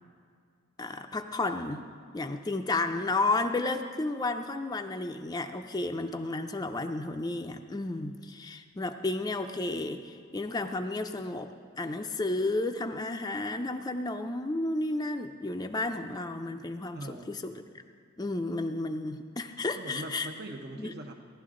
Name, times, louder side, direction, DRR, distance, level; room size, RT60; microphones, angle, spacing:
voice 1, 0.8-1.9 2.1-17.5 18.2-20.3 20.8-20.9, left 2 dB, 20° left, 5 dB, 0.5 m, -32 dB
voice 2, 16.9-17.4 19.7-21.1, right 1 dB, 55° right, 3 dB, 0.8 m, -41 dB
17.0 x 11.5 x 3.7 m, 2.2 s
head